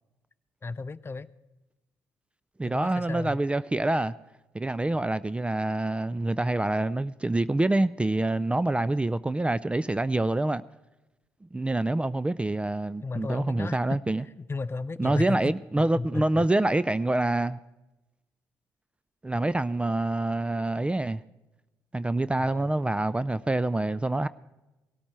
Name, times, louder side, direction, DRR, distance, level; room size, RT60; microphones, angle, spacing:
voice 1, 0.6-1.3 2.6-3.4 13.0-14.0 14.4-15.5 16.0-16.5 22.4-22.7, left 3 dB, 30° left, 0.6 m, -34 dB
voice 2, 2.6-4.1 4.5-10.6 11.5-14.2 15.0-17.6 19.2-21.2 21.9-24.3, right 2 dB, 15° right, 0.4 m, -26 dB
18.0 x 13.0 x 4.4 m
hypercardioid pair, 50°, 8 cm